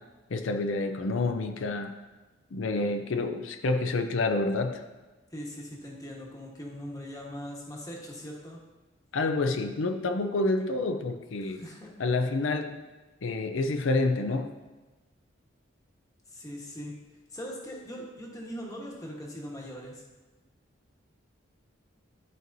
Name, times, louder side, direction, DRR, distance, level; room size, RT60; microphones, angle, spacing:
voice 1, 0.3-1.9 2.5-4.8 9.1-11.6 12.0-12.8 13.2-14.5, left 2 dB, 75° left, 6 dB, 0.5 m, -28 dB
voice 2, 5.3-8.6 11.4-11.9 16.3-16.9 17.3-20.0, equal, 20° left, -2 dB, 1.2 m, -40 dB
12.0 x 4.6 x 2.7 m, 1.2 s
head